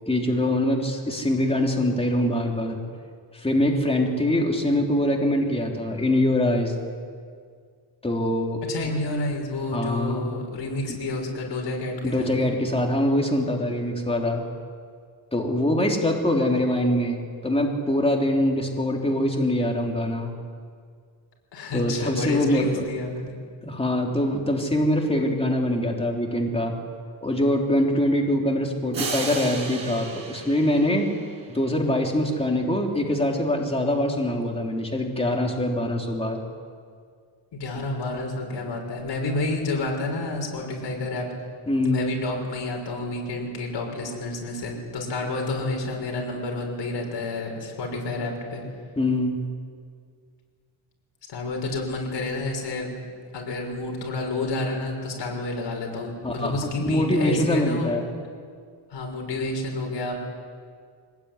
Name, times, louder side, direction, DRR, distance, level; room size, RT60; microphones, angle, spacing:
voice 1, 0.1-2.8 3.3-6.7 8.0-8.6 9.7-10.3 12.0-14.4 15.3-20.3 21.7-22.9 23.6-26.8 27.2-31.1 31.5-36.4 41.7-42.1 49.0-49.4 56.2-58.0, left 1 dB, 10° left, 0 dB, 3.7 m, -23 dB
voice 2, 8.7-12.3 21.5-23.3 37.5-41.3 41.8-48.6 51.3-52.9 53.3-57.9 58.9-60.2, left 2 dB, 65° left, 1 dB, 6.5 m, -29 dB
sound 1, 28.9-31.8, right 4 dB, 45° right, 6.3 m, -34 dB
23.5 x 19.5 x 10.0 m, 2.1 s
cardioid pair, 120°, 47 cm